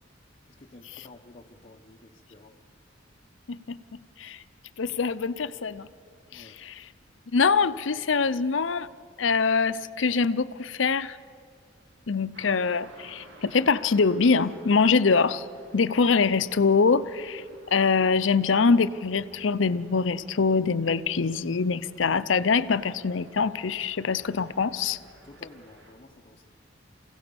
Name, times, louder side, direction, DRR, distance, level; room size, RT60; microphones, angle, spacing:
voice 1, 0.4-2.6 6.3-6.6 25.2-26.5, left 2 dB, 35° left, 0 dB, 0.9 m, -51 dB
voice 2, 3.5-4.4 4.8-5.9 6.3-6.9 7.3-8.9 9.2-11.2 12.1-15.5 15.7-25.0, left 5 dB, 75° left, 15 dB, 0.6 m, -24 dB
sound 1, 12.3-25.9, right 1 dB, 70° right, 2.4 m, -54 dB
28.0 x 16.5 x 7.0 m, 2.3 s
head